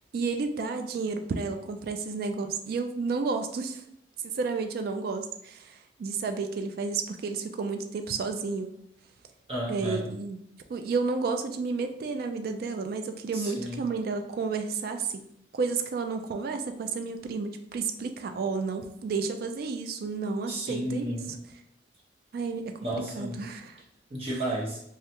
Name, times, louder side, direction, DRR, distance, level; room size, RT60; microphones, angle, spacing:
voice 1, 0.1-3.8 4.2-8.7 9.7-10.4 10.7-15.3 15.5-21.2 22.3-22.9 23.2-23.8, right 4 dB, 55° right, 6 dB, 0.3 m, -31 dB
voice 2, 9.5-10.1 13.3-13.9 20.5-21.4 22.8-23.4 24.1-24.8, right 1 dB, 35° right, -3 dB, 0.9 m, -33 dB
3.3 x 2.3 x 2.8 m, 0.75 s
head